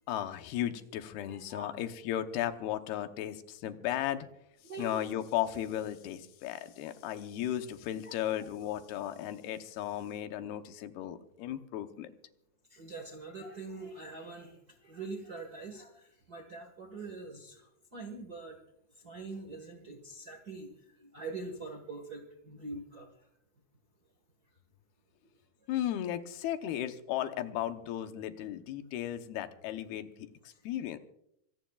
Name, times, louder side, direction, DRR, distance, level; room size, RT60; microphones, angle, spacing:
voice 1, 0.1-4.3 4.8-12.1 25.7-30.1 30.6-31.0, left 11 dB, 90° left, 8 dB, 2.9 m, -35 dB
voice 2, 1.3-1.8 4.6-5.2 8.0-8.5 12.7-18.6 19.0-23.1 30.5-30.6, right 3 dB, 75° right, 2 dB, 0.8 m, -44 dB
26.0 x 16.5 x 2.4 m, 0.76 s
omnidirectional pair, 4.4 m